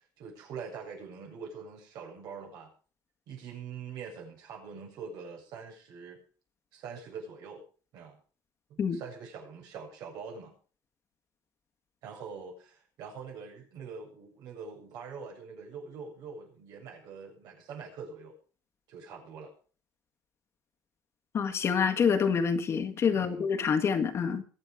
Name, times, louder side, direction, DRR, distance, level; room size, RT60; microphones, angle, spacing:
voice 1, 0.0-2.7 3.3-6.2 6.7-7.6 7.9-8.2 8.7-10.5 12.0-18.3 18.9-19.5 23.1-23.5, right 5 dB, 75° right, 7.6 m, -44 dB
voice 2, 21.3-24.4, left 6 dB, 40° left, 1.7 m, -27 dB
22.5 x 8.7 x 5.0 m
cardioid pair, 130°, 7 cm